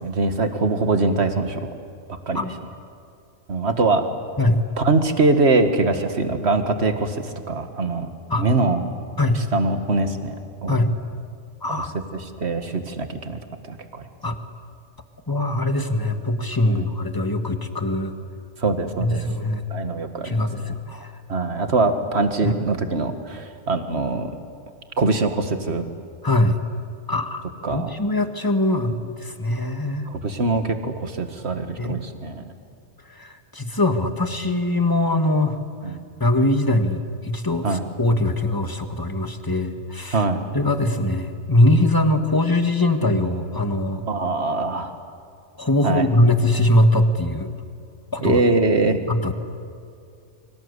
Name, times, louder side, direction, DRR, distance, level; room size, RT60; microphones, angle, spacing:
voice 1, 0.0-1.7 2.1-2.5 3.5-4.1 4.8-8.1 8.4-8.9 9.5-10.3 10.6-10.8 11.7-11.9 12.2-13.4 13.7-14.0 16.6-16.9 18.6-19.2 19.7-20.3 21.3-24.3 25.0-25.8 27.6-27.9 30.1-32.4 35.8-36.0 37.6-37.8 40.1-40.4 44.1-44.9 45.8-46.1 48.2-49.0, right 3 dB, 55° right, 7 dB, 2.0 m, -22 dB
voice 2, 11.6-11.9 14.2-14.4 15.3-18.1 19.0-19.7 20.2-21.1 22.4-22.5 26.2-26.6 27.1-27.4 27.7-30.1 31.8-32.0 33.2-35.6 36.2-40.2 40.5-44.0 45.6-47.5 48.1-48.4 49.1-49.3, left 1 dB, 15° left, 7 dB, 1.6 m, -21 dB
29.5 x 24.5 x 8.2 m, 2.4 s
omnidirectional pair, 1.3 m